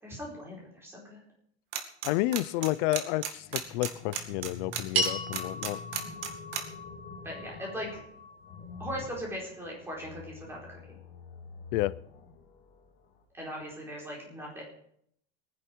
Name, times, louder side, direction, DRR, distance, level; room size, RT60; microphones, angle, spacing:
voice 1, 0.0-1.2 7.2-8.0 8.8-10.8 13.3-14.6, equal, 10° right, -3 dB, 4.8 m, -39 dB
sound 1, 1.7-2.1 2.3-6.6, right 10 dB, 70° right, 2.3 m, -33 dB
voice 2, 2.0-5.8 11.7-12.0, left 17 dB, 50° left, 17 dB, 0.6 m, -30 dB
sound 2, 3.3-13.2, left 5 dB, 30° left, 2.8 m, -47 dB
sound 3, 4.9-9.4, right 2 dB, 85° right, 4.7 m, -36 dB
22.0 x 10.5 x 4.6 m, 0.69 s
supercardioid pair, 175°, 30 cm